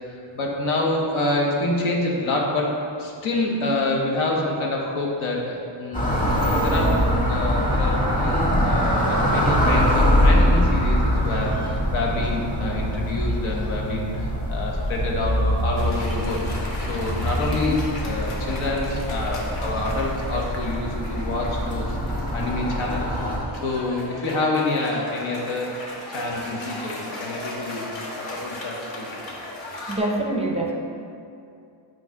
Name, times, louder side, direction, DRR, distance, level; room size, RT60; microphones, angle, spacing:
voice 1, 0.1-6.2 6.6-22.0 22.3-23.1 23.6-25.7 26.1-27.8 28.2-29.1, left 2 dB, 85° left, -1 dB, 1.2 m, -27 dB
sound 1, 5.9-23.4, equal, 15° left, 1.5 m, -23 dB
Cheering / Applause, 15.8-30.0, left 1 dB, 65° left, 1.3 m, -37 dB
voice 2, 29.9-30.7, right 2 dB, 15° right, 0 dB, 0.5 m, -24 dB
7.0 x 3.2 x 5.8 m, 2.5 s
cardioid pair, 115°, 47 cm